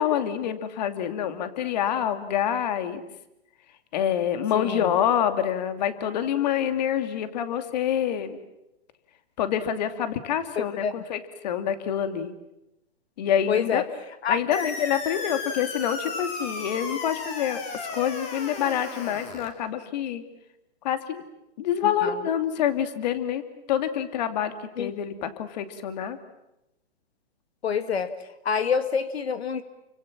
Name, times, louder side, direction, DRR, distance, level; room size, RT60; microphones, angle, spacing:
voice 1, 0.0-3.0 3.9-8.4 9.4-12.3 13.2-13.8 14.3-17.6 17.9-20.2 20.8-21.2 21.6-23.4 23.7-26.2, left 9 dB, 40° left, 9 dB, 2.6 m, -26 dB
voice 2, 4.5-4.9 10.6-10.9 13.5-13.8 14.2-14.7 22.0-22.2 24.8-24.9 27.6-28.1 28.5-29.6, left 6 dB, 75° left, 11 dB, 2.0 m, -27 dB
sound 1, 14.5-19.5, left 3 dB, 20° left, 3.7 m, -35 dB
29.5 x 25.0 x 7.4 m, 0.89 s
hypercardioid pair, 155°, 32 cm